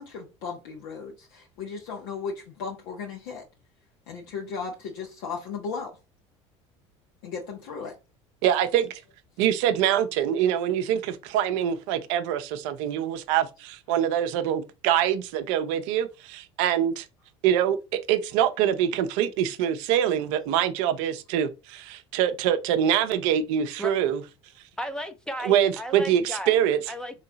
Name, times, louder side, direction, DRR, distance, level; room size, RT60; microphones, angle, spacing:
voice 1, 0.0-3.4 4.1-6.0 7.2-8.0, left 5 dB, 75° left, 1.3 m, -36 dB
voice 2, 8.4-9.0 9.4-17.0 17.4-24.2 25.4-26.8, right 10 dB, 75° right, 0.7 m, -24 dB
voice 3, 24.8-26.6 26.9-27.2, equal, 5° left, 0.7 m, -34 dB
3.7 x 3.2 x 4.0 m
hypercardioid pair, 80°, 16 cm